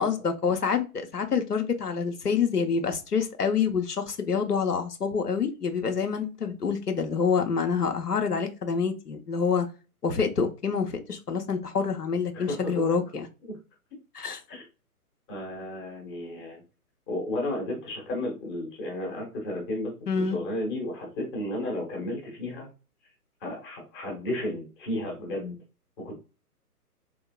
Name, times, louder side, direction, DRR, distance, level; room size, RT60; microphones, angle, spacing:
voice 1, 0.0-9.7 10.0-13.3 14.1-14.4 20.1-20.4, left 6 dB, 80° left, 5 dB, 0.9 m, -27 dB
voice 2, 15.3-16.6 17.1-22.7 23.4-25.5 26.0-26.1, left 1 dB, 15° left, 0 dB, 0.9 m, -33 dB
3.6 x 3.1 x 2.2 m, 0.31 s
figure-of-eight pair, 135°, 46 cm